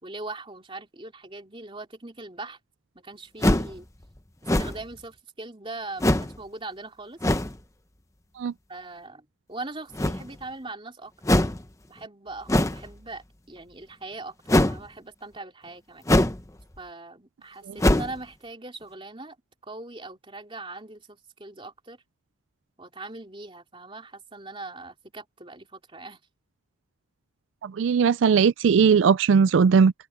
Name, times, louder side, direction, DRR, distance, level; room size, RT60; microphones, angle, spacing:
voice 1, 0.0-2.6 2.9-3.9 4.6-7.2 8.7-11.4 11.9-16.0 16.8-19.4 19.6-22.0 22.8-26.2, right 2 dB, 25° right, 3.2 m, -40 dB
sound 1, 3.4-3.8 4.5-4.9 6.0-6.4 7.2-7.5 9.9-10.4 11.2-11.6 12.5-12.9 14.5-14.8 16.1-16.5 16.8-16.9 17.8-18.2, left 1 dB, 15° left, 0.8 m, -22 dB
voice 2, 27.6-29.9, right 6 dB, 70° right, 0.4 m, -19 dB
open air
head